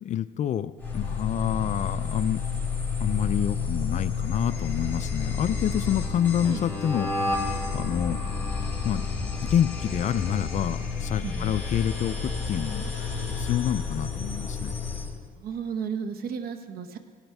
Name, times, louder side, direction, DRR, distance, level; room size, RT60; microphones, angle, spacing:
voice 1, 0.0-2.4 3.0-8.2 8.8-9.1 9.4-14.7, left 10 dB, 45° left, 13 dB, 0.4 m, -28 dB
sound 1, 0.8-15.1, left 4 dB, 10° left, 3.1 m, -30 dB
voice 2, 11.2-11.5 15.4-17.0, right 6 dB, 65° right, 8 dB, 1.0 m, -33 dB
17.5 x 12.0 x 3.5 m, 1.5 s
cardioid pair, 110°, 17 cm